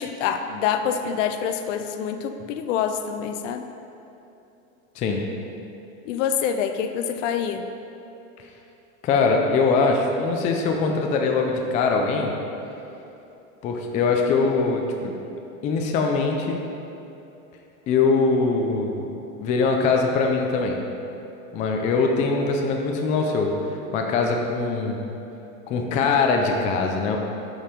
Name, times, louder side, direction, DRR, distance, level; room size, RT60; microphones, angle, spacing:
voice 1, 0.0-3.7 6.1-7.7, left 8 dB, 60° left, 8 dB, 0.7 m, -26 dB
voice 2, 9.0-12.3 13.6-15.1 15.6-16.6 17.9-19.0 19.4-20.8 21.5-23.6 23.9-25.0 25.7-27.2, left 4 dB, 20° left, 2 dB, 0.4 m, -22 dB
7.2 x 5.4 x 5.0 m, 2.9 s
supercardioid pair, 140°, 41 cm